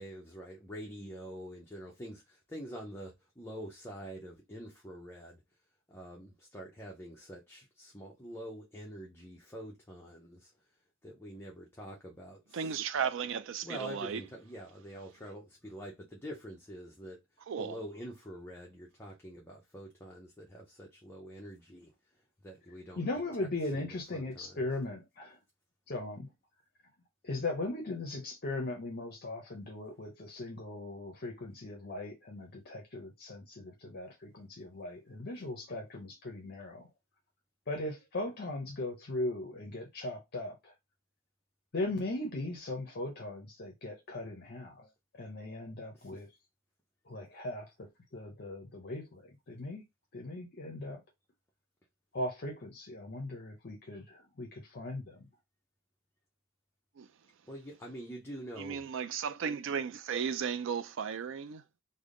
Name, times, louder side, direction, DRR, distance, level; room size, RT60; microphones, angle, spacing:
voice 1, 0.0-5.4 5.9-10.5 11.0-12.8 13.6-17.2 17.6-21.9 22.4-23.0 23.7-24.6 45.9-46.2 57.5-58.8, equal, 10° left, 0.6 m, -46 dB
voice 2, 12.5-14.2 17.5-17.8 57.0-57.1 58.6-61.6, right 7 dB, 65° right, 0.4 m, -35 dB
voice 3, 22.9-25.4 25.9-26.3 27.2-36.9 37.7-40.7 41.7-44.9 45.1-46.3 47.1-49.8 50.1-51.0 52.1-55.3, left 2 dB, 50° left, 0.6 m, -39 dB
3.4 x 2.1 x 3.6 m
head